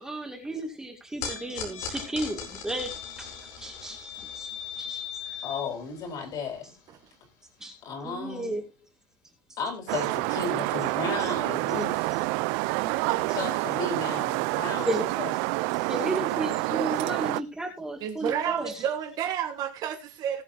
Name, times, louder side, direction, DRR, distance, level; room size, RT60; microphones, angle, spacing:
voice 1, 0.0-5.7 7.6-7.7 8.0-8.6 14.9-15.1 15.9-18.8, right 1 dB, 5° right, 1 dB, 2.4 m, -33 dB
sound 1, 1.2-7.6, left 6 dB, 80° left, 4.7 m, -42 dB
voice 2, 5.4-6.7 7.8-8.6 9.6-12.1 13.1-14.9 15.2-15.3, left 4 dB, 40° left, 4 dB, 4.4 m, -34 dB
sound 2, 9.9-17.4, right 23 dB, 65° right, 0.5 m, -28 dB
voice 3, 12.8-13.6 18.0-20.4, right 9 dB, 40° right, 7 dB, 1.4 m, -31 dB
19.5 x 7.4 x 2.8 m, 0.25 s
cardioid pair, 175°, 10 cm